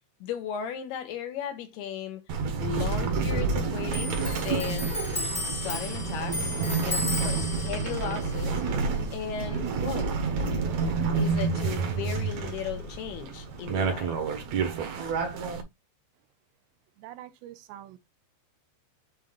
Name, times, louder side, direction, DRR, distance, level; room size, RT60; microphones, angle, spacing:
voice 1, 0.2-2.3 2.6-5.0 5.5-6.5 6.8-8.6 9.1-10.1 11.1-14.2, left 9 dB, 75° left, 2.6 m, -36 dB
sound 1, 2.3-15.6, right 4 dB, 60° right, 1.9 m, -29 dB
Clock, 3.9-10.9 11.2-12.5 12.8-13.6, left 2 dB, 35° left, 0.6 m, -36 dB
voice 2, 17.0-18.0, right 13 dB, 80° right, 2.9 m, -45 dB
7.8 x 2.8 x 5.2 m
omnidirectional pair, 5.2 m